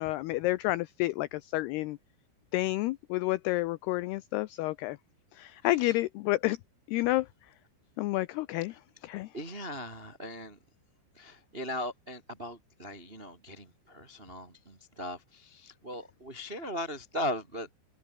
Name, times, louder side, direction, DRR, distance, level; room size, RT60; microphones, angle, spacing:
voice 1, 0.0-2.0 2.5-5.0 5.3-6.6 6.9-7.3 8.0-8.7 9.0-9.3, left 18 dB, 85° left, 2.3 m, -30 dB
voice 2, 9.3-10.6 11.1-17.7, left 1 dB, 35° right, 0.9 m, -38 dB
omnidirectional pair, 5.4 m